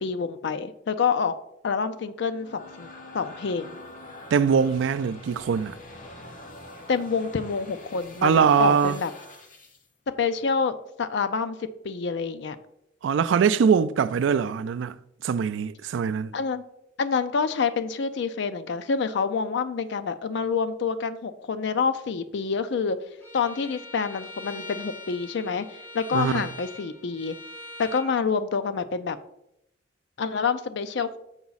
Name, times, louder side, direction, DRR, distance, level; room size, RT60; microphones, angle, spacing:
voice 1, 0.0-1.4 1.6-2.9 3.1-3.7 6.9-9.1 10.2-12.6 16.3-16.6 17.0-23.0 23.3-25.7 25.9-27.4 27.8-29.2 30.2-31.2, left 5 dB, 65° left, 0.5 m, -27 dB
sound 1, 2.1-9.9, left 2 dB, 45° left, 1.0 m, -45 dB
voice 2, 4.3-5.7 8.2-9.0 13.0-15.0 15.2-16.4 26.1-26.4, right 6 dB, 70° right, 0.3 m, -22 dB
Bowed string instrument, 23.2-28.1, left 1 dB, 10° left, 1.6 m, -42 dB
7.1 x 4.7 x 4.0 m
head